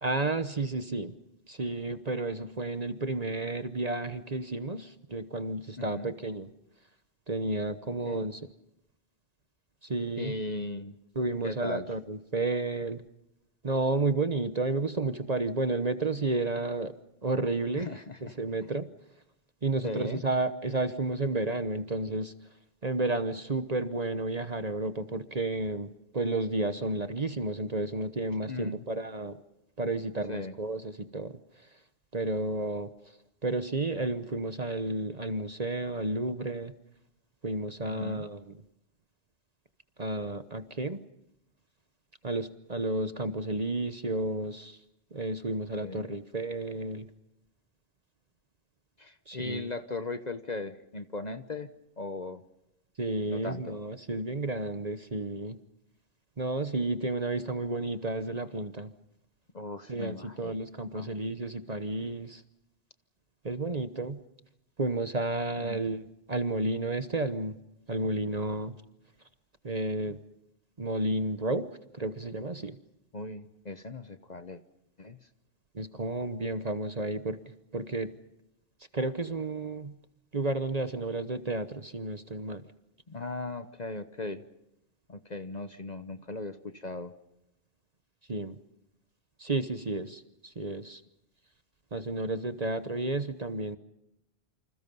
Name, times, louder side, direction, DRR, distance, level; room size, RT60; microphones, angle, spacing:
voice 1, 0.0-1.1 1.5-6.5 7.3-8.4 9.8-10.3 11.1-13.0 13.6-17.0 17.2-17.9 18.2-18.9 19.6-22.3 22.8-29.4 29.8-31.4 32.1-32.9 33.4-36.7 37.4-38.6 40.0-41.0 42.2-44.8 45.1-47.1 49.3-49.7 53.0-55.6 56.4-58.9 59.9-62.4 63.4-64.2 64.8-67.6 67.9-68.8 69.6-70.2 70.8-71.7 71.9-72.8 75.7-77.4 77.7-78.1 78.9-79.9 80.3-82.6 88.3-88.6 89.4-91.0 91.9-93.8, right 2 dB, 35° right, 11 dB, 1.1 m, -31 dB
voice 2, 5.8-6.1 7.9-8.2 10.2-11.0 11.4-11.9 17.8-18.4 19.8-20.2 28.4-28.8 30.3-30.5 37.8-38.3 45.8-46.1 49.0-51.7 52.0-52.4 53.3-53.8 59.5-60.6 60.9-61.1 65.6-65.8 73.1-74.6 75.0-75.2 83.1-84.4 85.1-87.1, left 3 dB, 35° left, 10 dB, 1.0 m, -38 dB
28.5 x 26.5 x 5.5 m, 0.86 s
omnidirectional pair, 1.3 m